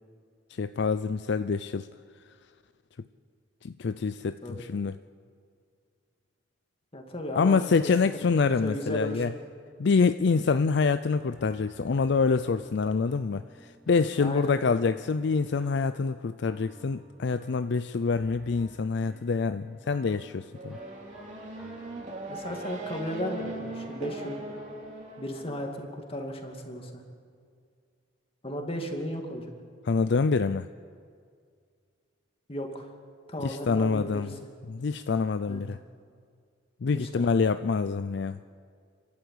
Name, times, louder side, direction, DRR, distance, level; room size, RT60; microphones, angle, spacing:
voice 1, 0.6-1.9 3.6-5.0 7.4-9.3 9.8-13.5 13.9-20.8 29.9-30.7 33.4-34.3 34.7-35.8 36.8-38.4, left 4 dB, 65° left, 11 dB, 0.5 m, -26 dB
voice 2, 6.9-7.6 8.4-9.2 14.2-14.6 22.3-24.4 25.2-27.0 28.4-29.5 32.5-32.9 33.3-34.3 35.5-35.6 36.9-37.6, equal, 30° left, 3 dB, 2.5 m, -35 dB
sound 1, 11.3-25.1, right 1 dB, ahead, 2.7 m, -53 dB
Race car auto racing / Accelerating revving vroom, 20.5-25.7, right 2 dB, 40° right, 2.8 m, -40 dB
29.5 x 12.0 x 8.5 m, 2.2 s
head